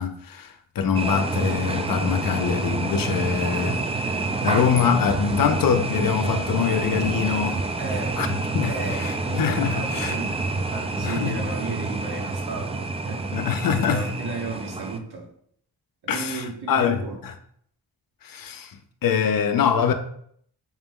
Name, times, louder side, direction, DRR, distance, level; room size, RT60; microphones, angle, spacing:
voice 1, 0.0-7.6 8.2-10.2 11.0-11.5 13.3-14.1 16.1-17.3 18.2-19.9, left 7 dB, 60° left, 0.5 m, -24 dB
sound 1, 0.9-15.0, right 3 dB, 15° right, 0.3 m, -28 dB
voice 2, 7.8-8.2 8.7-9.4 9.7-10.3 10.7-13.3 13.9-15.3 16.0-17.2, right 3 dB, 75° right, 1.2 m, -34 dB
5.0 x 2.1 x 3.5 m
cardioid pair, 80°, 39 cm